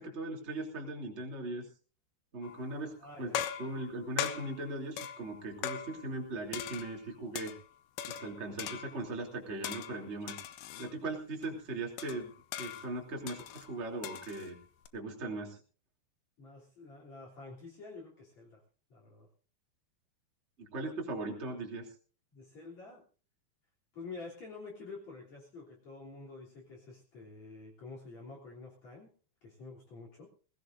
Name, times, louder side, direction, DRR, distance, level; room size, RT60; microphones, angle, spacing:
voice 1, 0.0-1.6 2.3-7.5 8.1-10.4 10.8-12.3 12.6-14.6 14.9-15.6 20.6-21.9, right 2 dB, 20° right, 0 dB, 2.5 m, -39 dB
sound 1, 2.4-2.8 3.3-6.2 6.5-7.6 8.0-9.2 9.6-10.9 11.4-11.5 12.0-14.9, left 10 dB, 75° left, 2.4 m, -41 dB
voice 2, 3.0-3.4 16.4-18.6 18.9-19.3 22.3-23.0 23.9-29.1 29.4-30.3, left 3 dB, 40° left, -1 dB, 4.1 m, -48 dB
21.0 x 17.0 x 2.6 m, 0.39 s
omnidirectional pair, 5.4 m